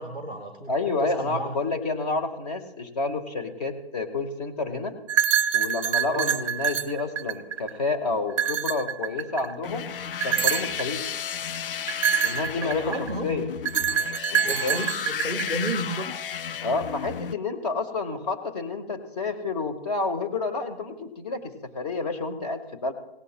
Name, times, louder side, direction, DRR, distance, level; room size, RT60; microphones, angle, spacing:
voice 1, 0.0-0.7 1.0-1.5 6.1-6.3 12.6-13.3 14.4-16.3, right 1 dB, 10° left, 1 dB, 0.8 m, -32 dB
voice 2, 0.7-5.0 5.5-9.9 10.2-11.0 12.2-13.5 14.3-14.9 16.6-22.9, left 3 dB, 40° left, 7 dB, 1.6 m, -29 dB
sound 1, 5.1-7.8 8.3-9.5 10.2-10.9 11.9-13.1 13.7-15.7, right 9 dB, 35° right, 0.5 m, -25 dB
sound 2, 9.6-17.3, left 8 dB, 60° left, 0.4 m, -33 dB
17.5 x 15.5 x 2.2 m, 0.86 s
hypercardioid pair, 160°, 31 cm